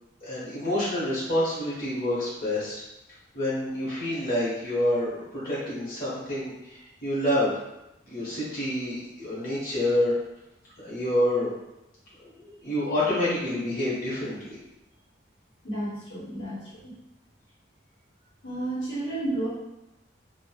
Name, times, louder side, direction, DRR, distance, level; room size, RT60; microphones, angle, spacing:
voice 1, 0.2-2.8 3.3-7.5 8.1-10.1 10.8-11.5 12.2-14.6, left 1 dB, 50° left, -9 dB, 0.8 m, -28 dB
voice 2, 15.6-16.9 18.4-19.5, right 1 dB, 70° left, -8 dB, 0.9 m, -32 dB
2.9 x 2.0 x 2.3 m, 0.92 s
head